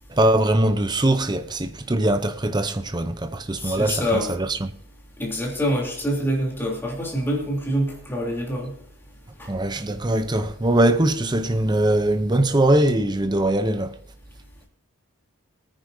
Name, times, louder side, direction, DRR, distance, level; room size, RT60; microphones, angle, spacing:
voice 1, 0.1-4.7 9.5-14.0, right 1 dB, 20° right, 0.7 m, -21 dB
voice 2, 3.6-4.3 5.2-8.7 9.4-9.5, equal, 10° left, 3.3 m, -26 dB
23.5 x 9.5 x 2.7 m
head